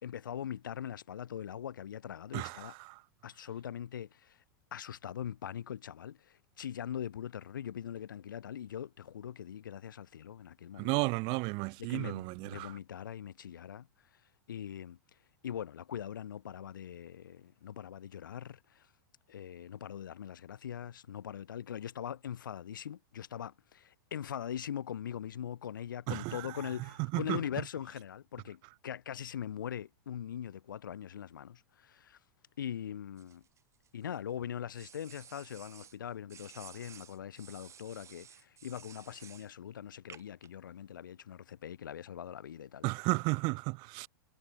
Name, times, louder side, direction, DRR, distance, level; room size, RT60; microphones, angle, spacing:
voice 1, 0.0-2.7 3.2-4.4 4.7-11.0 11.8-13.9 14.5-15.0 15.4-18.9 19.3-32.2 32.6-33.4 33.9-42.9, left 9 dB, 80° left, 3.3 m, -41 dB
voice 2, 2.3-3.0 10.8-12.7 26.1-26.5 27.1-27.4 42.8-44.1, right 30 dB, 50° right, 0.5 m, -33 dB
sound 1, 33.2-34.2 34.7-36.0 36.3-39.5 40.1-40.5, right 8 dB, 25° right, 7.1 m, -54 dB
hypercardioid pair, 100°, 11 cm